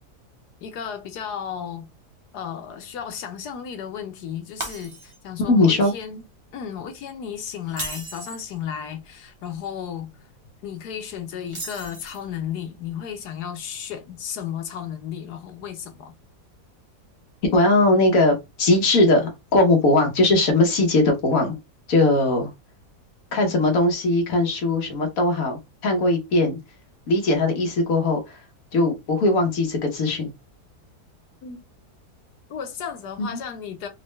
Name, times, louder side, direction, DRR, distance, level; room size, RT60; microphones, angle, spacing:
voice 1, 0.6-1.9 2.3-6.3 6.5-10.3 10.6-16.1 31.4-31.6 32.5-33.9, left 8 dB, 75° left, 1.3 m, -34 dB
Shatter, 4.6-5.4 5.8-6.0 7.6-8.5 11.5-12.4, right 2 dB, 25° right, 0.7 m, -35 dB
voice 2, 5.5-5.9 17.5-21.6 21.9-22.5 23.3-26.6 27.1-28.2 28.7-30.3 33.2-33.4, left 2 dB, 60° left, 1.4 m, -20 dB
4.2 x 2.2 x 3.2 m
omnidirectional pair, 1.8 m